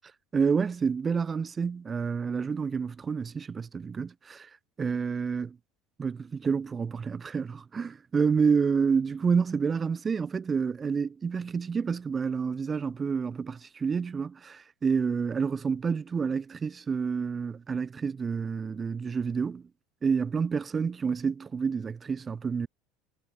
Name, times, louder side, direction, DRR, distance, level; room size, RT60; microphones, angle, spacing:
voice 1, 0.3-4.5 4.8-5.5 6.0-19.6 20.0-22.7, right 5 dB, 25° right, 0.4 m, -29 dB
supercardioid pair, 105°, 0 cm